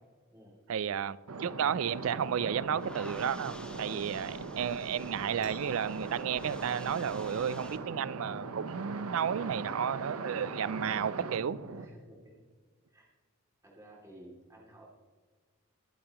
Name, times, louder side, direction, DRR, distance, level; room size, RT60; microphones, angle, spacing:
voice 1, 0.7-11.6, right 8 dB, 65° right, 0.4 m, -32 dB
sound 1, 1.3-11.8, right 3 dB, 85° right, 0.8 m, -40 dB
sound 2, 1.7-7.8, left 1 dB, 5° left, 0.6 m, -52 dB
sound 3, 5.4-7.0 7.3-7.4 7.7-8.3 8.9-9.1 9.8-10.0 10.4-10.9, right 2 dB, 50° right, 2.3 m, -56 dB
voice 2, 11.7-12.4 12.9-13.1 13.6-14.9, right 1 dB, 15° right, 2.6 m, -54 dB
21.5 x 8.7 x 3.0 m
head